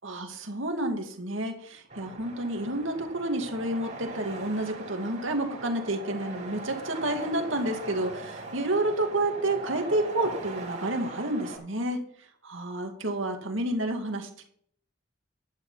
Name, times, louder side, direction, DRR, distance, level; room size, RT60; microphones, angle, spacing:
voice 1, 0.0-12.0 12.4-14.5, right 1 dB, 80° right, 4 dB, 2.4 m, -30 dB
sound 1, 1.9-11.6, right 3 dB, 35° right, 4.4 m, -40 dB
12.0 x 11.5 x 4.2 m, 0.62 s
head